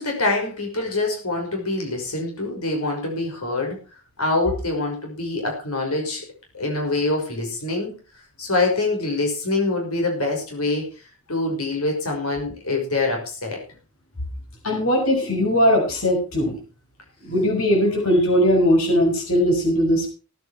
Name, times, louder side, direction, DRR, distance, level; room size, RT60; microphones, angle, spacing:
voice 1, 0.0-3.8 4.2-6.2 6.5-7.9 8.4-10.9 11.3-13.6, left 2 dB, 85° left, 1 dB, 6.1 m, -25 dB
voice 2, 14.6-16.6 17.2-20.1, equal, 65° left, 1 dB, 6.1 m, -19 dB
18.0 x 9.5 x 4.6 m, 0.34 s
head